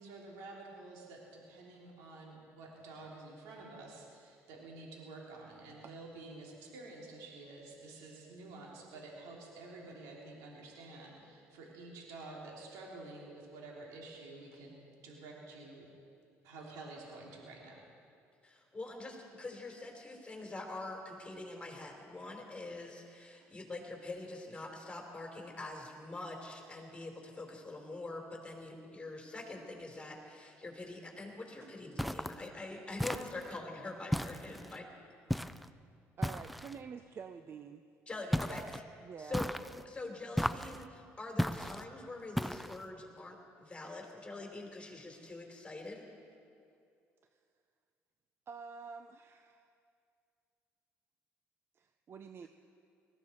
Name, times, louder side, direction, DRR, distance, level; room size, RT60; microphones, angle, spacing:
voice 1, 0.0-15.9 16.4-17.8, right 2 dB, 85° right, -2 dB, 3.0 m, -50 dB
voice 2, 18.4-34.9 35.3-35.5 38.1-38.8 39.2-39.4 39.8-46.1, left 2 dB, 20° left, 1 dB, 3.8 m, -45 dB
sound 1, 32.0-32.4 33.0-33.6 34.1-34.8 35.3-35.7 36.2-36.8 38.3-38.8 39.3-39.8 40.4-40.8 41.4-41.8 42.4-42.8, equal, ahead, 0.5 m, -35 dB
voice 3, 36.2-37.8 38.5-38.7 39.0-39.4 48.5-49.7 51.8-52.5, right 6 dB, 45° right, 8 dB, 0.6 m, -48 dB
20.0 x 15.0 x 4.4 m, 2.4 s
supercardioid pair, 85°, 6 cm